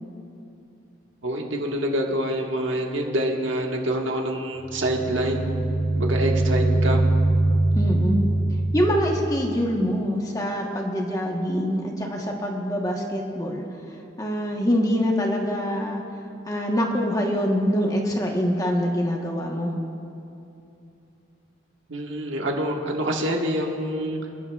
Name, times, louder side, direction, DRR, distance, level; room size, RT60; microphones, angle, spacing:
voice 1, 1.2-5.5 5.9-7.1 21.9-24.2, right 1 dB, 90° right, 1 dB, 1.5 m, -26 dB
sound 1, 4.6-9.4, right 2 dB, 85° left, 1.9 m, -23 dB
voice 2, 7.7-8.3 8.7-13.6 14.2-16.0 16.5-19.7, equal, 20° left, 0 dB, 1.1 m, -24 dB
27.0 x 11.0 x 2.4 m, 2.7 s
head